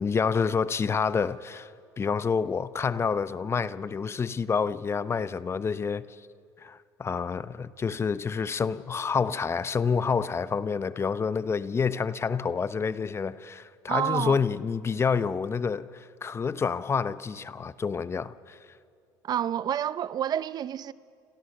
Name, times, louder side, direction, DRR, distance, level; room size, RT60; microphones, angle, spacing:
voice 1, 0.0-1.7 2.0-6.1 6.6-18.6, left 5 dB, 30° left, 0.8 m, -28 dB
voice 2, 13.9-14.5 19.2-20.9, right 10 dB, 45° right, 0.7 m, -29 dB
30.0 x 27.0 x 6.6 m
supercardioid pair, 90°, 9 cm